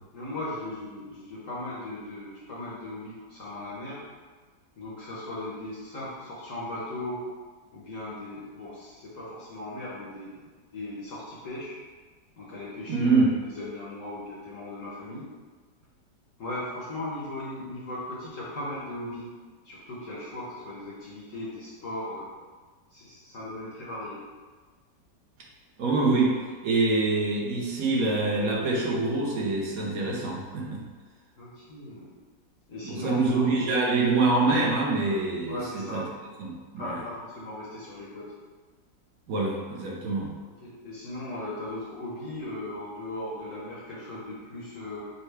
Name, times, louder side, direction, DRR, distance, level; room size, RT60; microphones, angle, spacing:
voice 1, 0.1-4.0 4.8-7.2 7.7-10.3 10.7-11.8 12.4-13.2 13.4-15.3 16.4-19.3 19.6-22.3 22.9-24.2 31.4-32.1 32.7-33.6 35.5-36.0 36.8-38.3 40.6-45.1, left 1 dB, 55° left, -7 dB, 1.0 m, -37 dB
voice 2, 12.9-13.3 25.8-26.3 26.6-30.8 32.8-36.0 36.4-37.0 39.3-40.3, right 3 dB, 60° right, -2 dB, 1.1 m, -25 dB
5.4 x 2.3 x 3.3 m, 1.4 s
omnidirectional pair, 1.9 m